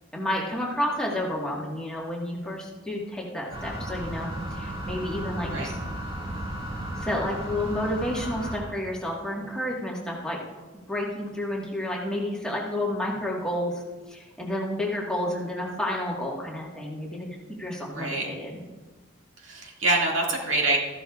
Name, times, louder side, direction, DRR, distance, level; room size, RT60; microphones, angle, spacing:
voice 1, 0.1-5.8 7.0-10.4 10.9-13.8 14.1-17.3 17.6-18.6, left 1 dB, 5° left, -3 dB, 1.4 m, -30 dB
sound 1, 3.5-8.6, right 1 dB, 25° right, 2.1 m, -34 dB
voice 2, 17.8-18.3 19.4-20.8, right 2 dB, 80° right, -1 dB, 2.1 m, -26 dB
14.0 x 11.5 x 2.4 m, 1.3 s
head